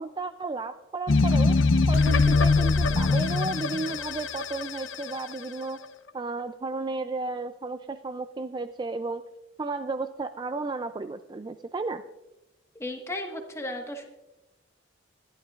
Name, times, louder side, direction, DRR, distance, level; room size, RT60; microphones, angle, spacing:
voice 1, 0.0-1.6 1.9-5.9 6.1-9.2 9.6-12.0, right 3 dB, 25° right, 10 dB, 0.3 m, -33 dB
sound 1, 1.1-5.4, left 3 dB, 80° left, 0.8 m, -23 dB
voice 2, 12.8-14.1, left 1 dB, 15° left, 3 dB, 1.4 m, -34 dB
21.5 x 11.5 x 2.4 m, 0.97 s
head